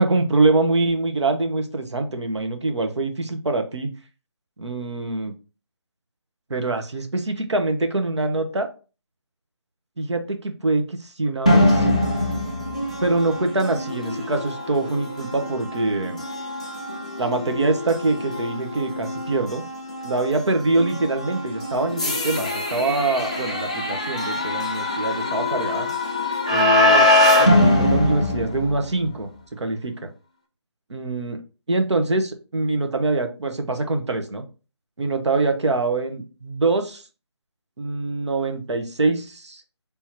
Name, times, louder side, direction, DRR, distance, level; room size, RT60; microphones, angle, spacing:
voice 1, 0.0-3.9 4.6-5.3 6.5-8.7 10.0-11.9 13.0-16.2 17.2-19.6 20.0-25.9 26.5-27.1 27.4-29.3 29.6-30.1 30.9-31.4 31.7-34.4 35.0-37.0 37.8-39.6, right 3 dB, 75° right, 6 dB, 1.1 m, -24 dB
sound 1, 11.5-29.2, left 1 dB, 15° left, 0.3 m, -23 dB
3.6 x 2.9 x 4.4 m, 0.34 s
figure-of-eight pair, 170°, 15 cm